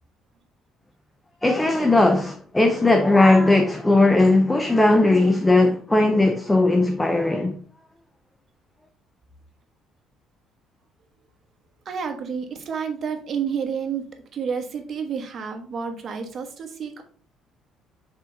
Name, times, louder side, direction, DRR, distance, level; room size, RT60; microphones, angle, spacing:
voice 1, 1.4-7.6, left 2 dB, 10° left, 0.6 m, -18 dB
voice 2, 11.8-14.0 14.3-17.0, right 6 dB, 40° right, 1.2 m, -30 dB
6.0 x 4.4 x 3.9 m
cardioid pair, 130°, 0 cm